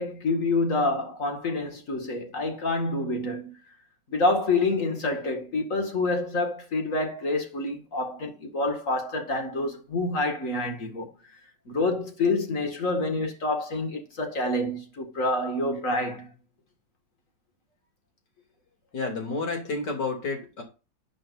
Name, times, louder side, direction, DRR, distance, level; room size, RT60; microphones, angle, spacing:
voice 1, 0.0-3.5 4.1-11.1 11.7-16.3, left 2 dB, 50° left, 2.4 m, -27 dB
voice 2, 18.9-20.6, left 3 dB, 85° left, 3.5 m, -30 dB
12.5 x 7.8 x 2.6 m
omnidirectional pair, 1.8 m